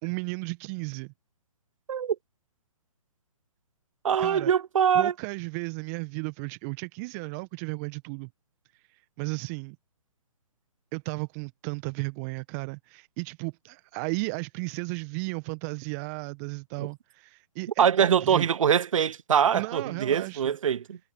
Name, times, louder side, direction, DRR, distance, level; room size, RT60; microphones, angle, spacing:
voice 1, 0.0-1.1 4.2-4.5 4.9-8.3 8.9-9.8 10.9-18.5 19.5-20.6, right 31 dB, 25° right, 1.2 m, -34 dB
voice 2, 4.0-5.1 16.8-16.9 17.8-21.0, right 8 dB, 60° right, 0.7 m, -23 dB
figure-of-eight pair, 135°, 19 cm